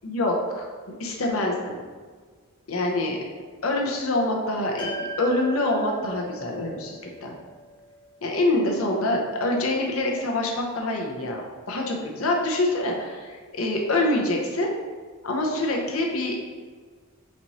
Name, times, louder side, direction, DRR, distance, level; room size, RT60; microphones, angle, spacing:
voice 1, 0.0-0.7 1.0-1.8 2.7-3.2 3.6-7.3 8.2-11.4 11.7-14.7 15.2-16.4, left 2 dB, 80° left, 0 dB, 0.8 m, -25 dB
sound 1, 4.8-9.2, right 1 dB, 25° left, 1.1 m, -39 dB
4.3 x 4.1 x 3.0 m, 1.6 s
head